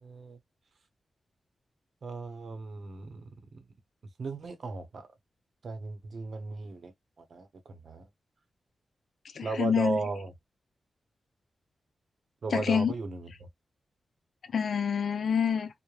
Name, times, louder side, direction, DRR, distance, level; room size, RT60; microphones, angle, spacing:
voice 1, 0.0-0.4 2.0-3.6 4.2-5.1 5.6-6.9 7.2-8.1 9.4-10.3 12.4-13.5, right 4 dB, 65° right, 0.7 m, -36 dB
voice 2, 9.3-10.0 12.5-12.9 14.5-15.7, left 7 dB, 75° left, 0.5 m, -27 dB
3.1 x 2.1 x 2.2 m
cardioid pair, 75°, 0 cm